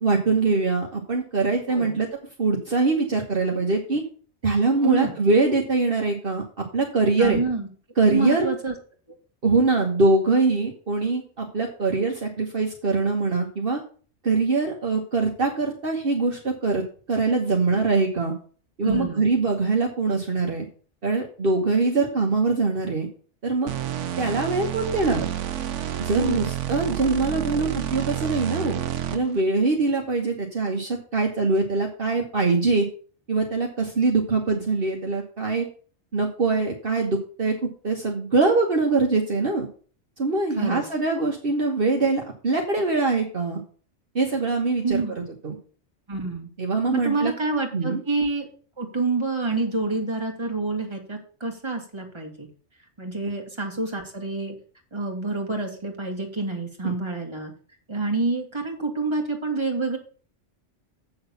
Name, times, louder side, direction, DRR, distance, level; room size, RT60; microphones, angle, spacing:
voice 1, 0.0-2.1 2.4-4.0 4.4-7.4 8.0-8.5 9.4-13.8 14.2-16.8 17.1-18.3 18.8-20.6 21.0-23.1 23.4-23.7 24.2-25.3 26.0-28.8 29.1-32.9 33.3-35.6 36.1-39.7 40.2-43.6 44.1-45.6 46.6-47.3 47.7-48.0 56.8-56.9, right 3 dB, 50° right, 1 dB, 1.5 m, -23 dB
voice 2, 1.7-2.0 4.8-5.2 7.2-7.7 8.1-8.7 18.8-19.3 26.1-26.5 40.6-40.8 44.8-45.2 46.1-46.5 46.9-48.5 48.8-52.5 53.0-54.5 54.9-57.5 57.9-60.0, right 3 dB, 25° right, 2 dB, 2.2 m, -27 dB
sound 1, 23.7-29.4, right 11 dB, 80° right, 1.1 m, -29 dB
8.1 x 6.5 x 7.0 m, 0.41 s
omnidirectional pair, 1.2 m